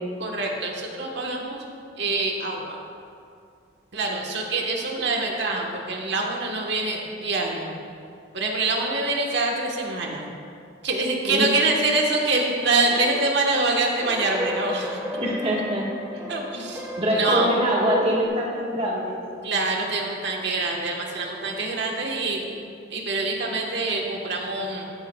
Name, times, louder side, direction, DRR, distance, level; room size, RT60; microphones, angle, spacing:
voice 1, 0.2-1.6 2.0-2.8 3.9-7.8 8.3-10.3 10.8-15.0 16.3-17.5 19.4-22.4 22.9-24.8, right 3 dB, 65° right, 0 dB, 1.3 m, -25 dB
sound 1, 12.7-18.3, left 1 dB, 10° right, 1.2 m, -33 dB
voice 2, 15.2-15.9 16.1-16.2 17.0-19.2, equal, 35° right, -4 dB, 1.4 m, -24 dB
14.0 x 9.0 x 2.3 m, 2.4 s
head